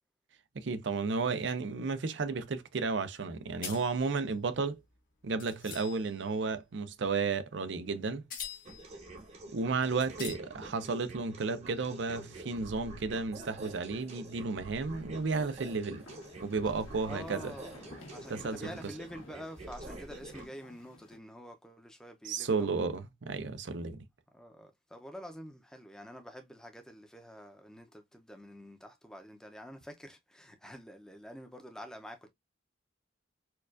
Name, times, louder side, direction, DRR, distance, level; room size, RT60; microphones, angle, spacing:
voice 1, 0.5-4.8 5.2-8.2 9.5-16.0 16.4-17.5 18.3-18.6 22.2-24.0, right 4 dB, 65° right, 0.5 m, -33 dB
sound 1, 3.6-6.3 7.7-7.9 8.3-9.0 9.5-9.6 10.0-10.4, left 8 dB, 45° left, 0.9 m, -44 dB
sound 2, 8.7-20.5, right 2 dB, 35° right, 0.8 m, -47 dB
sound 3, 11.8-13.3 13.6-13.7 15.1-21.2, left 1 dB, 90° left, 1.4 m, -54 dB
voice 2, 17.0-17.8 18.1-22.9 24.3-32.3, equal, 5° left, 0.6 m, -47 dB
4.5 x 2.4 x 2.4 m
head